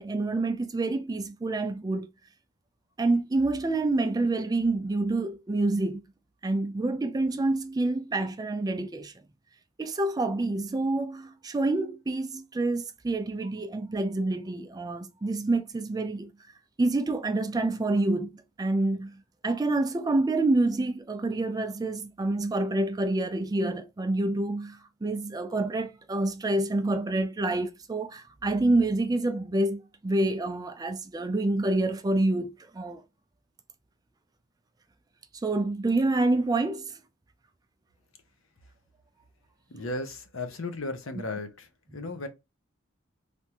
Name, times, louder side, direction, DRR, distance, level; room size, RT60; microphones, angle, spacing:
voice 1, 0.0-2.1 3.0-6.0 6.4-9.1 9.8-16.3 16.8-33.0 35.3-37.0, right 2 dB, 20° right, 0.3 m, -27 dB
voice 2, 39.7-42.3, left 2 dB, 65° left, 0.8 m, -35 dB
3.4 x 2.5 x 2.9 m
head